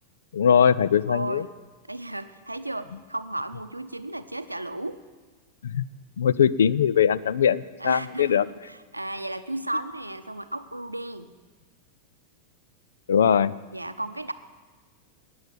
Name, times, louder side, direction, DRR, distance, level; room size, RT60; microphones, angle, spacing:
voice 1, 0.3-1.4 5.6-5.8 6.2-8.5 13.1-13.5, left 8 dB, 65° left, 20 dB, 0.4 m, -21 dB
voice 2, 1.1-1.5 1.9-5.0 7.8-11.3 13.7-14.3, right 2 dB, 85° right, 11 dB, 0.7 m, -34 dB
18.5 x 7.0 x 8.6 m, 1.3 s
figure-of-eight pair, 90°, 0 cm